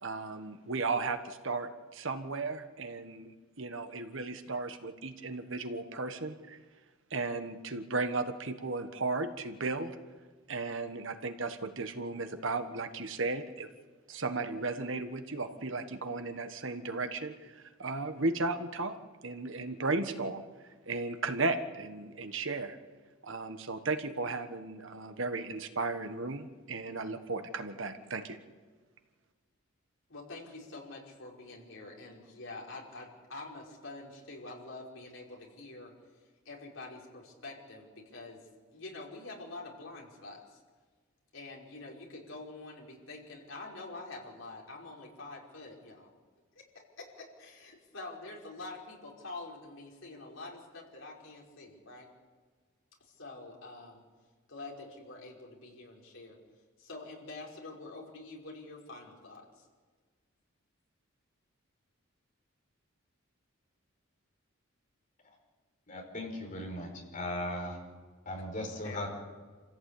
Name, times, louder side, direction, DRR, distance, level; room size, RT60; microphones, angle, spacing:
voice 1, 0.0-6.6 7.1-10.0 10.5-13.7 14.1-22.8 23.2-28.4, right 3 dB, 65° right, 8 dB, 1.5 m, -35 dB
voice 2, 30.1-35.9 36.5-38.4 38.7-40.6 41.3-46.1 47.0-52.1 53.0-54.0 54.5-56.4 56.8-59.7 68.8-69.1, left 2 dB, 65° left, -1 dB, 5.3 m, -46 dB
voice 3, 65.9-67.8 68.3-69.1, left 1 dB, 40° left, 2 dB, 5.2 m, -37 dB
27.5 x 16.0 x 8.6 m, 1.5 s
head